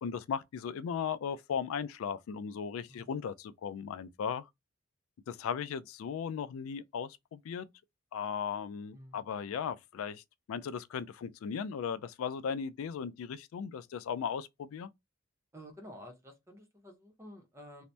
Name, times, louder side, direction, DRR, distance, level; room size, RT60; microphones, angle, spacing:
voice 1, 0.0-4.5 5.3-7.7 8.1-10.2 10.5-14.9, left 7 dB, 90° left, 0.3 m, -37 dB
voice 2, 8.9-9.3 15.5-17.8, equal, 15° right, 0.7 m, -51 dB
2.7 x 2.1 x 3.2 m
head